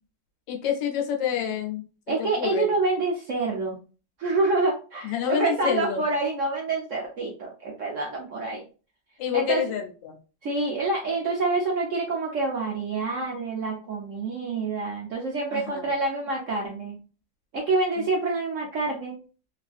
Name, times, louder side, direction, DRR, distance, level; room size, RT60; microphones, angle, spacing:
voice 1, 0.5-2.7 5.0-6.0 9.2-10.2 15.5-15.9 18.0-18.1, left 9 dB, 80° left, 3 dB, 1.4 m, -28 dB
voice 2, 2.1-3.8 4.2-8.6 9.3-9.6 10.4-17.0 17.5-19.2, right 3 dB, 65° right, -2 dB, 0.8 m, -27 dB
3.2 x 2.4 x 2.4 m, 0.35 s
omnidirectional pair, 2.0 m